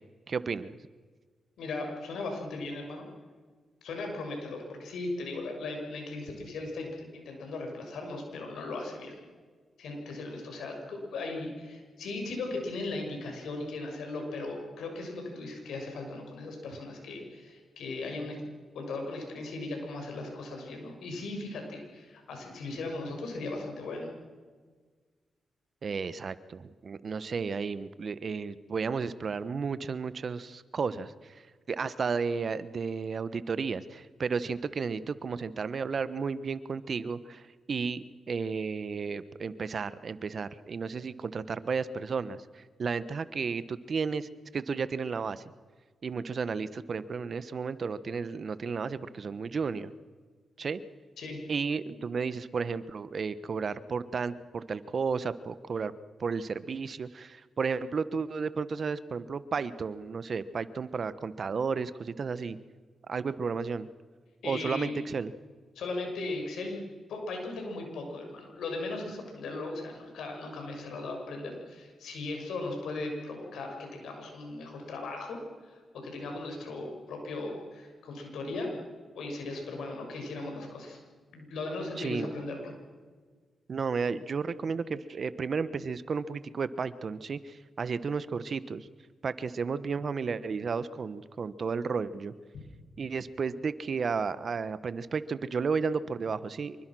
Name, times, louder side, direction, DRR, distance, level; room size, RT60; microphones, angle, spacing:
voice 1, 0.3-0.8 25.8-31.4 31.7-45.4 46.0-49.9 50.6-50.8 51.5-55.9 56.2-62.6 63.1-63.9 64.4-65.3 82.0-82.3 83.7-88.9 89.2-92.3 93.0-96.8, right 5 dB, 60° right, 15 dB, 1.1 m, -33 dB
voice 2, 1.6-3.0 3.8-9.2 9.8-18.4 18.7-24.1 51.2-51.4 64.4-64.9 65.7-66.8 67.1-78.7 79.1-81.0 81.3-82.7, left 2 dB, 85° left, 2 dB, 6.7 m, -37 dB
26.0 x 23.5 x 6.3 m, 1.5 s
cardioid pair, 60°, 0 cm